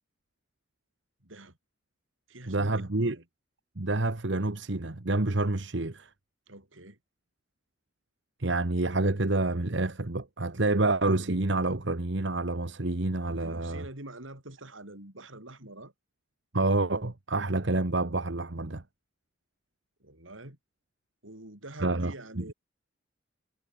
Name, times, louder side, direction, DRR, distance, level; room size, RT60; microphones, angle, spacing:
voice 1, 1.2-1.6 2.3-3.2 6.5-7.0 13.4-15.9 20.0-20.6 21.2-22.5, right 1 dB, 85° right, 5.9 m, -46 dB
voice 2, 2.5-3.2 3.8-6.1 8.4-13.8 16.5-18.8 21.8-22.4, right 2 dB, 70° right, 1.4 m, -28 dB
head